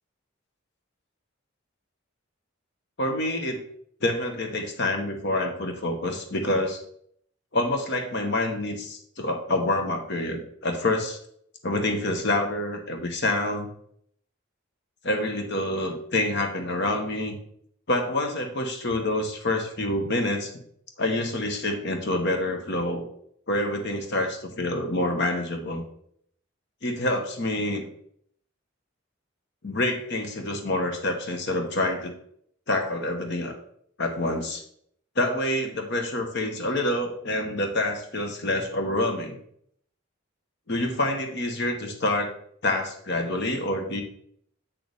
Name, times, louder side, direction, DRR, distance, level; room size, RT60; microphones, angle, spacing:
voice 1, 3.0-3.6 4.0-6.8 7.5-11.2 11.6-13.7 15.0-17.4 17.9-20.5 21.0-23.1 23.5-25.8 26.8-27.8 29.6-32.1 32.7-33.5 34.0-34.6 35.2-39.4 40.7-42.3 42.6-44.0, left 1 dB, 60° left, 4 dB, 1.1 m, -27 dB
7.6 x 6.5 x 3.5 m, 0.66 s
head